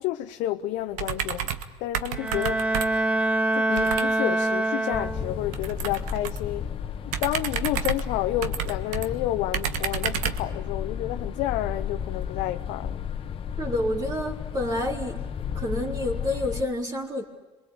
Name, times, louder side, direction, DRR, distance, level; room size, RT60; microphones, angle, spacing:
voice 1, 0.0-1.5 1.8-2.6 3.5-6.7 7.1-13.0, left 14 dB, 80° left, 0.9 m, -30 dB
sound 1, 0.9-1.7 1.9-3.1 3.8-4.1 5.5-6.5 7.1-9.1 9.5-10.5, right 9 dB, 80° right, 1.6 m, -31 dB
Bowed string instrument, 2.1-5.5, right 1 dB, 10° right, 1.0 m, -25 dB
Inside of the Gandia's train, 4.9-16.6, left 8 dB, 45° left, 1.2 m, -33 dB
voice 2, 13.6-15.2 15.5-17.2, left 1 dB, 30° right, 3.4 m, -28 dB
27.0 x 23.0 x 8.6 m
supercardioid pair, 95°, 13 cm